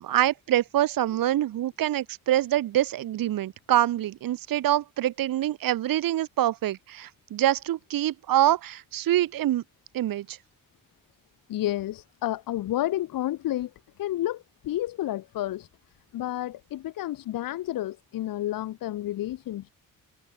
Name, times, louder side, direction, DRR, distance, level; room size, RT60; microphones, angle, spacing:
voice 1, 0.0-9.6 9.9-10.4, right 13 dB, 90° right, 0.9 m, -25 dB
voice 2, 11.5-13.7 14.0-15.7 16.1-19.7, left 14 dB, 85° left, 0.7 m, -30 dB
cardioid pair, 115°, 33 cm